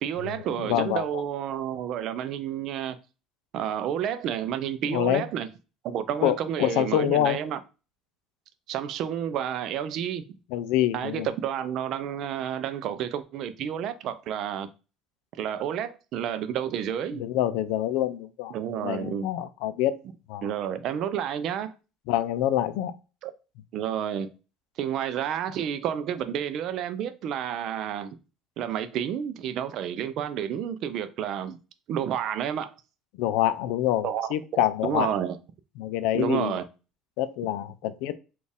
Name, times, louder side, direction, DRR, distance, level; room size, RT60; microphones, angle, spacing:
voice 1, 0.0-3.0 3.5-5.5 5.8-7.6 8.7-10.2 10.9-14.7 15.4-17.2 18.5-19.3 20.0-20.1 20.4-21.7 23.2-23.3 23.7-24.3 24.8-28.1 28.6-31.6 31.9-32.7 34.0-34.3 34.8-35.4 36.1-36.6, right 9 dB, 55° right, 0.4 m, -30 dB
voice 2, 0.6-1.0 4.9-5.2 6.2-7.4 10.5-11.3 17.2-18.5 18.8-20.0 20.3-20.4 22.1-22.9 33.2-35.1 35.8-36.6 37.2-38.2, left 12 dB, 80° left, 0.4 m, -26 dB
4.2 x 2.4 x 3.4 m
cardioid pair, 145°, 0 cm